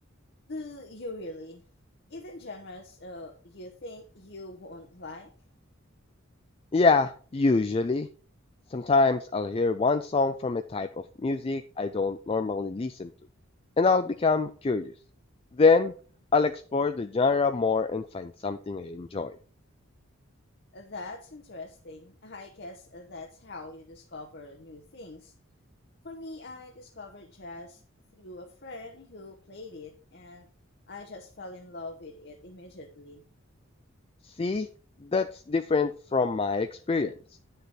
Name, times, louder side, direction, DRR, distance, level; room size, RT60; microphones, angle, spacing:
voice 1, 0.5-1.6 2.1-5.3 20.7-25.3 26.0-27.8 28.1-30.5 30.9-33.2, left 2 dB, 50° left, 3 dB, 1.0 m, -43 dB
voice 2, 6.7-8.1 8.7-10.9 11.2-13.1 13.8-14.9 15.6-15.9 16.3-19.3 34.4-34.7 35.0-37.1, left 4 dB, 25° left, 10 dB, 0.4 m, -25 dB
9.5 x 6.7 x 4.5 m, 0.41 s
head